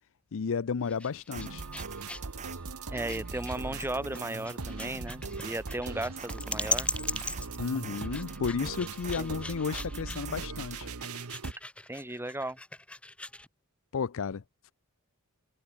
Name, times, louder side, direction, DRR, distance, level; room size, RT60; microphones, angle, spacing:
voice 1, 0.3-1.7 7.6-10.9 13.9-14.4, left 5 dB, 65° left, 0.5 m, -32 dB
sound 1, 0.8-13.5, left 2 dB, 5° left, 0.6 m, -39 dB
sound 2, 1.3-10.9, right 7 dB, 35° right, 1.4 m, -46 dB
sound 3, 1.3-11.5, right 3 dB, 70° right, 1.2 m, -40 dB
voice 2, 2.9-6.9 9.2-9.4 11.9-12.6, right 1 dB, 10° right, 2.4 m, -35 dB
head